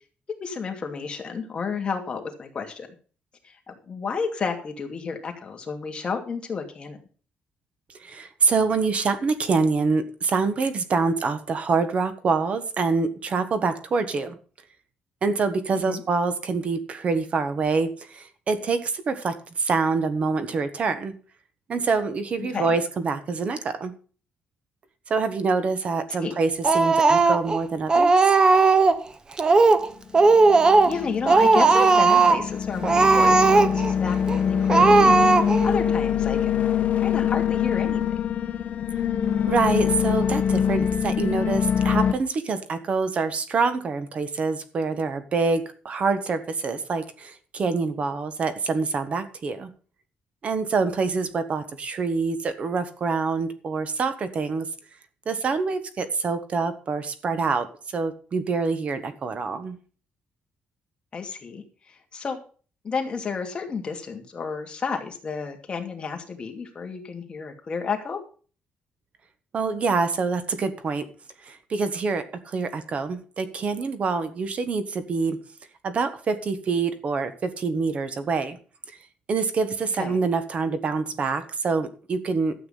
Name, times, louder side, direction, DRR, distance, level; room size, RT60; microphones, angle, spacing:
voice 1, 0.4-2.9 3.4-7.0 15.7-16.0 22.4-22.8 26.2-26.3 30.9-35.3 35.6-36.6 37.0-38.0 61.1-62.4 62.8-68.2 80.0-80.2, left 5 dB, 30° left, 3 dB, 2.6 m, -31 dB
voice 2, 8.0-14.4 15.2-21.1 21.7-23.9 25.1-28.3 38.9-39.0 39.5-49.7 50.4-54.7 55.2-57.7 57.9-59.8 69.5-71.1 71.4-75.4 75.8-78.6 79.3-82.5, right 4 dB, 40° right, 10 dB, 1.4 m, -26 dB
Speech, 26.6-27.6 27.9-29.0 29.4-29.9 30.1-31.0 31.3-32.5 32.8-33.9 34.3-34.4 34.7-35.7, right 3 dB, 25° right, 0.9 m, -17 dB
sound 1, 30.3-42.1, left 8 dB, 45° left, 1.2 m, -24 dB
12.5 x 8.5 x 5.6 m, 0.39 s
cardioid pair, 155°, 3 cm